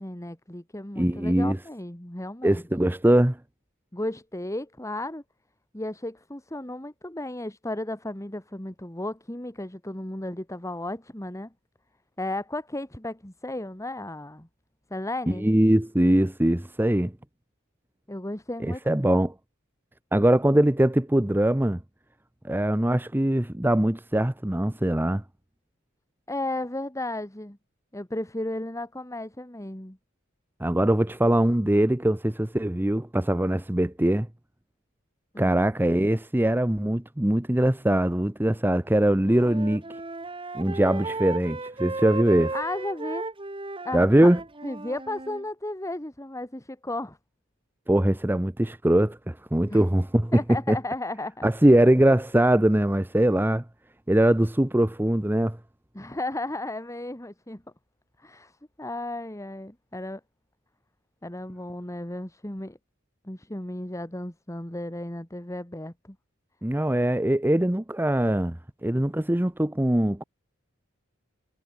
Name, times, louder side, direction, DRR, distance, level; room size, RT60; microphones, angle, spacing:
voice 1, 0.0-2.6 3.9-5.2 5.7-11.5 12.2-14.5 14.9-15.5 18.1-19.2 26.3-27.6 27.9-30.0 35.3-35.6 42.5-43.3 43.8-44.3 44.6-47.2 49.7-49.8 50.3-51.5 55.9-57.6 58.2-58.5 58.8-60.2 61.2-62.8 63.2-66.2, left 1 dB, 15° left, 2.4 m, -34 dB
voice 2, 1.0-1.6 2.4-3.4 15.3-17.1 18.6-19.3 20.1-21.8 22.4-25.2 30.6-34.3 35.4-40.0 40.5-42.5 43.9-44.4 47.9-50.3 50.7-50.8 51.4-53.6 54.1-55.6 66.6-70.2, right 1 dB, 10° right, 0.8 m, -22 dB
Wind instrument woodwind instrument, 39.0-45.4, right 3 dB, 25° right, 2.3 m, -35 dB
head